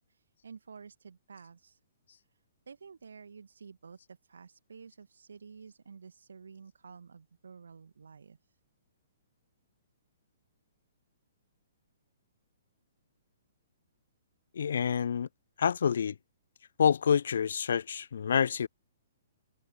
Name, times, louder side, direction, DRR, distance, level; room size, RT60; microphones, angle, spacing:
voice 1, 0.0-1.8 2.7-8.6, right 5 dB, 65° right, 2.3 m, -51 dB
voice 2, 14.5-15.3 15.6-16.2 16.8-18.7, left 7 dB, 60° left, 0.6 m, -27 dB
figure-of-eight pair, 120°, 0 cm